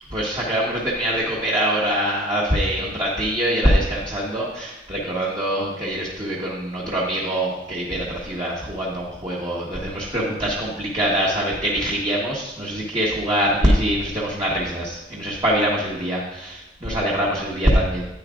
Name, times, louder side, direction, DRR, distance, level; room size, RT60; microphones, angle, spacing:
voice 1, 0.1-18.1, equal, 25° right, -5 dB, 1.2 m, -23 dB
10.5 x 9.2 x 2.4 m, 0.95 s
head